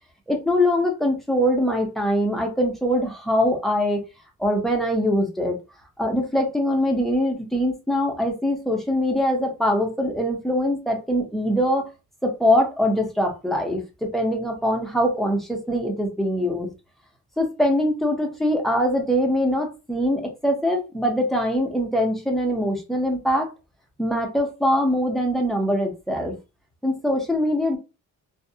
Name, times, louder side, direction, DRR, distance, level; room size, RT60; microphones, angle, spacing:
voice 1, 0.3-4.0 4.4-5.6 6.0-11.8 12.2-16.7 17.4-23.5 24.0-26.3 26.8-27.8, equal, ahead, 1 dB, 0.6 m, -23 dB
2.3 x 2.0 x 2.6 m, 0.29 s
cardioid pair, 130°, 34 cm